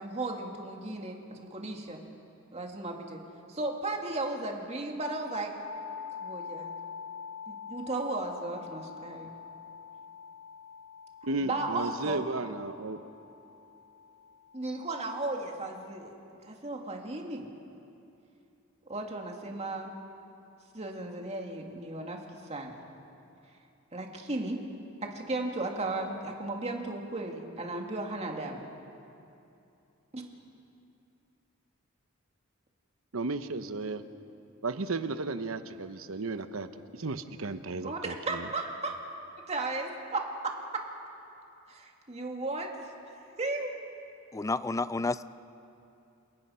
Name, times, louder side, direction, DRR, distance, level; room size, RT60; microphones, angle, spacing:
voice 1, 0.0-2.0 2.5-3.2 3.5-5.5 6.2-6.7 7.5-9.3 11.4-12.2 14.5-16.1 16.4-17.5 18.9-19.9 20.7-22.2 22.5-22.8 23.9-24.6 25.0-28.7 30.1-30.2 37.8-39.0 39.5-40.8 41.7-42.7 43.4-43.7, right 2 dB, 30° right, 2 dB, 2.3 m, -35 dB
sound 1, 5.6-15.4, left 6 dB, 70° left, 3.2 m, -45 dB
voice 2, 11.2-13.0 33.1-34.0 34.6-38.5, right 3 dB, 90° right, 10 dB, 1.0 m, -34 dB
voice 3, 44.3-45.3, left 3 dB, 15° left, 15 dB, 0.4 m, -30 dB
28.5 x 18.0 x 5.7 m, 2.8 s
head